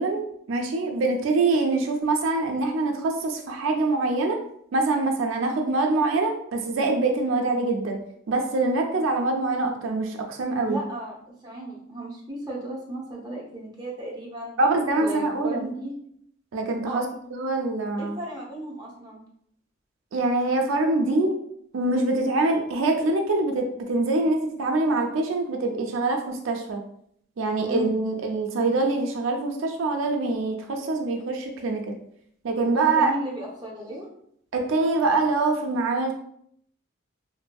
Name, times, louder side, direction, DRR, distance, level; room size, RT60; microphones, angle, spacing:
voice 1, 0.0-4.4 4.7-8.0 8.3-10.8 14.6-15.7 16.5-17.0 17.3-18.2 20.1-21.3 21.7-26.8 27.4-31.9 32.4-33.1 34.5-36.1, right 2 dB, 85° right, 3 dB, 0.4 m, -24 dB
voice 2, 10.7-14.6 15.0-15.9 16.9-17.0 18.0-19.2 27.7-27.9 32.7-34.1, right 1 dB, 20° right, -4 dB, 0.6 m, -35 dB
2.6 x 2.6 x 2.2 m, 0.68 s
head